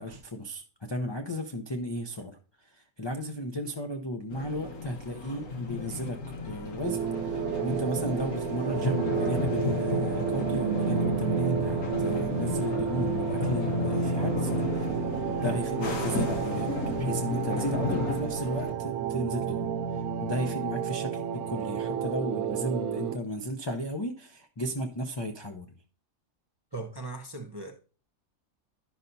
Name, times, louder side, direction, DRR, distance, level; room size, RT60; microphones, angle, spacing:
voice 1, 0.0-14.9 15.4-25.7, equal, 40° left, 0.3 m, -35 dB
sound 1, 4.3-18.7, left 3 dB, 85° left, 1.7 m, -33 dB
sound 2, 6.8-23.2, right 7 dB, 90° right, 1.1 m, -31 dB
voice 2, 26.7-27.7, right 2 dB, 30° right, 0.5 m, -38 dB
11.0 x 5.6 x 2.6 m
omnidirectional pair, 1.5 m